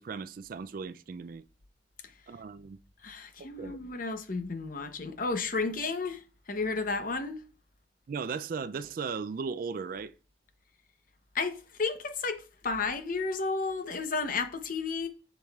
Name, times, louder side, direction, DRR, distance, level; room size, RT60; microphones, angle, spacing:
voice 1, 0.0-1.4 2.3-2.8 3.4-3.8 8.1-10.1, right 5 dB, 50° right, 0.3 m, -37 dB
voice 2, 3.0-6.2 6.5-7.4 11.3-15.1, left 4 dB, 45° left, 0.7 m, -32 dB
7.6 x 6.9 x 2.3 m
head